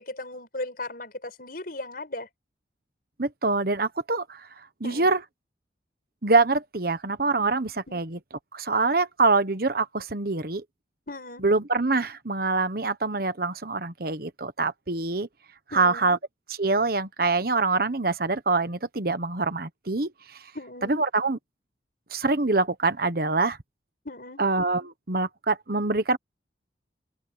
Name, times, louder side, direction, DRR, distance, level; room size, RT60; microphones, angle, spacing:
voice 1, 0.0-2.3 4.8-5.1 7.9-8.0 11.1-11.5 15.7-16.2 20.5-21.0 24.0-24.4, left 2 dB, 55° left, 5.9 m, -37 dB
voice 2, 3.2-4.5 4.8-5.2 6.2-8.2 8.5-10.6 11.4-15.3 15.7-16.2 16.6-20.4 20.8-21.4 22.1-23.6 24.4-26.2, right 3 dB, 55° right, 1.3 m, -25 dB
open air
head